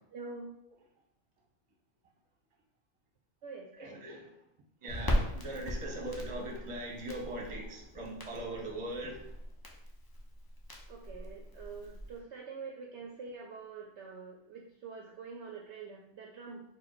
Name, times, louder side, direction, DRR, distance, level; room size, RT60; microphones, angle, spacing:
voice 1, 0.1-0.5 3.4-3.7 10.9-16.6, right 4 dB, 65° right, 0 dB, 0.8 m, -45 dB
voice 2, 3.8-4.2 4.8-9.2, right 1 dB, 30° right, -1 dB, 0.8 m, -40 dB
Crackle, 4.9-12.2, left 1 dB, 30° left, 0.4 m, -38 dB
4.4 x 2.2 x 4.7 m, 0.79 s
omnidirectional pair, 1.4 m